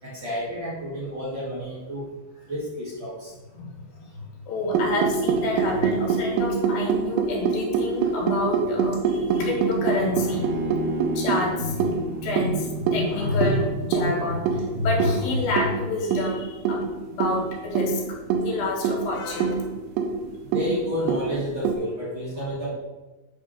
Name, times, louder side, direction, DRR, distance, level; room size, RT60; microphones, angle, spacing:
voice 1, 0.0-2.1 2.5-3.3 20.4-22.8, equal, 45° right, -7 dB, 1.5 m, -31 dB
voice 2, 3.6-10.8 11.1-19.7, left 2 dB, 75° left, -1 dB, 3.8 m, -28 dB
sound 1, 4.7-21.7, right 5 dB, 90° right, 3.1 m, -25 dB
Bowed string instrument, 10.2-13.5, equal, 60° right, 1.7 m, -34 dB
8.4 x 3.6 x 6.2 m, 1.1 s
omnidirectional pair, 5.1 m